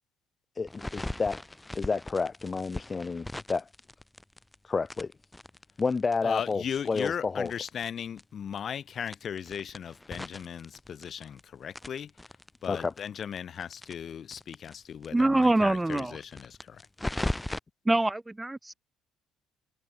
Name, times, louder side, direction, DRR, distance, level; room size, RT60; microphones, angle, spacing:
voice 1, 0.6-1.4 1.7-3.7 4.6-5.1 5.8-7.5 12.7-12.9, left 4 dB, 30° left, 0.3 m, -30 dB
sound 1, 0.7-4.5 4.9-7.9 8.2-8.3 8.5-8.6 9.0-11.4 11.7-14.7 15.0-15.1 15.4-15.5 15.9-17.6, left 1 dB, 10° left, 2.5 m, -38 dB
voice 2, 6.2-12.1 12.6-16.8, left 8 dB, 50° left, 1.2 m, -37 dB
voice 3, 15.1-16.2 17.8-18.7, right 2 dB, 15° right, 1.4 m, -25 dB
supercardioid pair, 75°, 0 cm